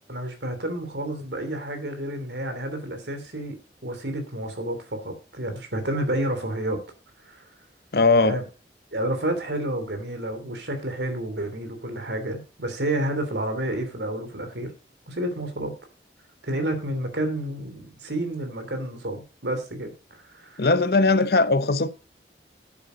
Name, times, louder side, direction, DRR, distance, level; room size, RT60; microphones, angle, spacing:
voice 1, 0.1-3.6 3.8-6.8 7.2-7.5 8.2-8.4 8.9-14.7 15.1-15.7 16.4-20.6, right 1 dB, 80° right, 2.9 m, -30 dB
voice 2, 7.9-8.4 20.6-21.9, left 3 dB, 60° left, 0.8 m, -19 dB
9.6 x 8.2 x 5.1 m
head